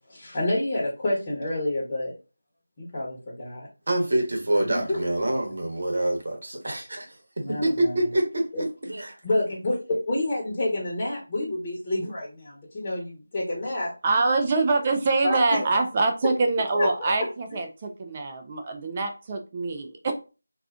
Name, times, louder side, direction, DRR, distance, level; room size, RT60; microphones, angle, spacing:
voice 1, 0.1-2.1 2.8-3.7 4.7-5.0 7.4-7.9 8.5-8.6 9.2-13.9 15.2-15.8 16.7-17.1, left 1 dB, 25° left, 1.0 m, -28 dB
voice 2, 3.9-7.1 7.5-9.1, right 1 dB, 60° right, 1.0 m, -26 dB
voice 3, 14.0-20.1, right 3 dB, 25° right, 0.4 m, -25 dB
2.4 x 2.4 x 3.5 m
figure-of-eight pair, 165°, 0 cm